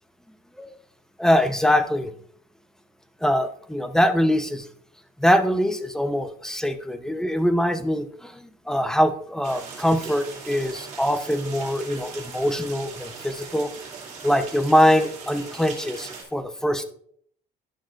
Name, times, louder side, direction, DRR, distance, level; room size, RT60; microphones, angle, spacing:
voice 1, 1.2-2.1 3.2-4.6 5.2-8.4 8.7-13.7 14.2-16.9, equal, 5° left, 9 dB, 0.8 m, -23 dB
sound 1, 9.4-16.2, right 5 dB, 45° right, 2.7 m, -40 dB
11.5 x 6.1 x 2.5 m, 0.62 s
cardioid pair, 110°, 17 cm